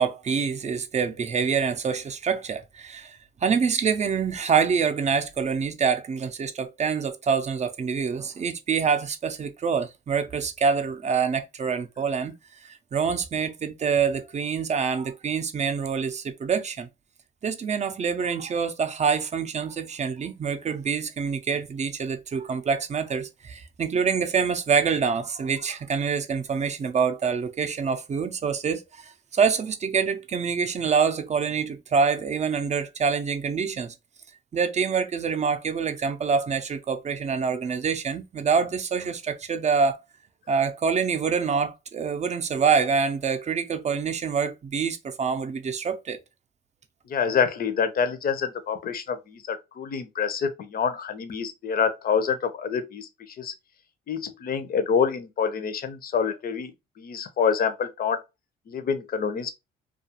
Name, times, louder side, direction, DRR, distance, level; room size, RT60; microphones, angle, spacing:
voice 1, 0.0-12.3 12.7-16.9 17.4-33.9 34.5-40.0 40.5-46.2, right 6 dB, 35° right, 0.5 m, -26 dB
voice 2, 47.1-53.1 53.4-53.5 54.1-56.7 57.0-58.2 58.7-59.5, left 6 dB, 50° left, 0.6 m, -26 dB
2.4 x 2.3 x 2.8 m
cardioid pair, 90°, 20 cm